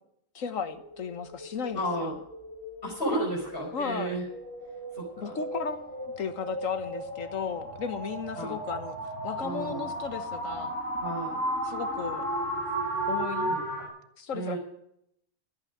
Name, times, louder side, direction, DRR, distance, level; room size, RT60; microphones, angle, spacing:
voice 1, 0.3-2.2 3.7-4.2 5.2-9.0 9.2-10.8 11.6-12.2 13.1-13.6 14.2-14.6, left 6 dB, 75° left, 10 dB, 1.6 m, -35 dB
sound 1, 0.6-13.9, right 1 dB, 65° right, 5.1 m, -35 dB
voice 2, 1.7-2.1 2.8-4.2 4.9-5.4 8.3-8.6 9.4-9.9 11.0-11.4 13.5-13.6 14.3-14.6, right 1 dB, 45° left, -4 dB, 4.8 m, -32 dB
13.5 x 8.7 x 9.4 m, 0.75 s
omnidirectional pair, 1.4 m